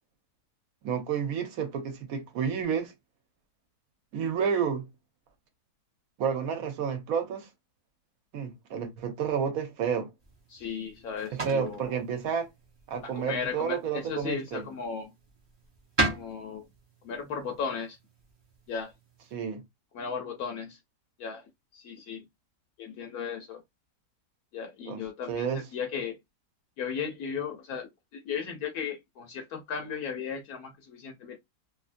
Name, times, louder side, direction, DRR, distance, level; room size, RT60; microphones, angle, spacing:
voice 1, 0.8-2.9 4.1-4.9 6.2-7.5 8.3-10.1 11.3-12.5 12.9-14.7 19.3-19.6 24.9-25.7, right 7 dB, 65° right, 1.1 m, -30 dB
sound 1, 10.2-19.4, right 2 dB, 35° right, 0.4 m, -38 dB
voice 2, 10.5-12.0 13.0-15.1 16.1-16.7 17.0-18.0 18.7-18.9 19.9-20.8 21.2-21.4 21.7-22.2 22.8-23.6 24.5-26.2 26.8-31.4, left 6 dB, 70° left, 1.0 m, -36 dB
2.7 x 2.6 x 2.5 m
omnidirectional pair, 1.8 m